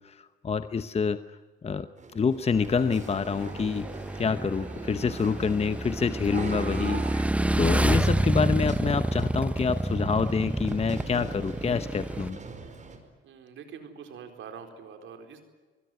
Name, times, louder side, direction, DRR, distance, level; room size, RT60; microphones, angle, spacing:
voice 1, 0.0-1.9 2.1-3.9 4.2-7.0 7.6-12.4, left 5 dB, 30° left, 12 dB, 0.9 m, -27 dB
sound 1, 2.0-13.0, right 4 dB, 40° right, 5.3 m, -43 dB
Motorcycle / Engine, 2.5-12.3, right 1 dB, 5° right, 0.7 m, -29 dB
voice 2, 13.2-15.4, right 6 dB, 75° right, 6 dB, 4.5 m, -44 dB
24.5 x 20.5 x 9.5 m, 1.3 s
cardioid pair, 90°, 20 cm